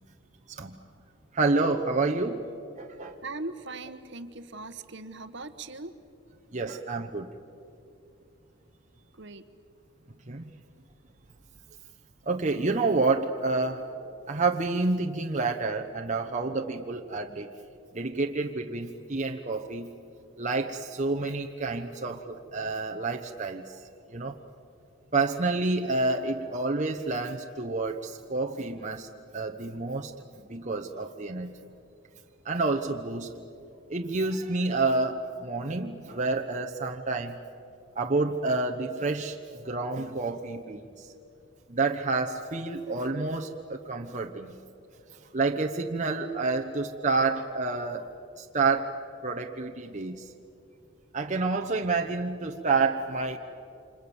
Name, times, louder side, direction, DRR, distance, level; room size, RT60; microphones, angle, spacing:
voice 1, 1.3-2.4 2.7-3.2 6.5-7.3 10.3-10.5 12.3-13.8 14.3-17.5 17.9-19.9 20.4-23.8 24.1-24.4 25.1-29.1 29.3-30.1 30.4-31.5 32.4-33.3 33.9-37.4 37.9-39.4 39.6-41.1 41.7-44.5 45.3-48.1 48.4-48.9 49.2-50.2 51.1-53.4, right 3 dB, 35° right, 2 dB, 1.0 m, -29 dB
voice 2, 3.2-6.0 9.1-9.5, right 2 dB, 55° right, 10 dB, 1.3 m, -40 dB
30.0 x 26.0 x 7.2 m, 2.7 s
head